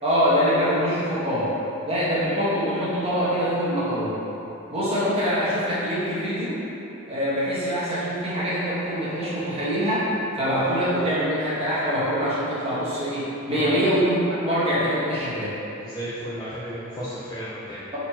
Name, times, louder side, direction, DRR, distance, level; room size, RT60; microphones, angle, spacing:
voice 1, 0.0-1.5 1.8-4.2 4.7-6.6 7.1-10.1 10.3-15.6, equal, 30° right, -9 dB, 1.1 m, -24 dB
voice 2, 13.5-13.8 15.8-18.0, right 1 dB, 20° left, -11 dB, 0.6 m, -33 dB
4.1 x 2.9 x 4.3 m, 2.9 s
head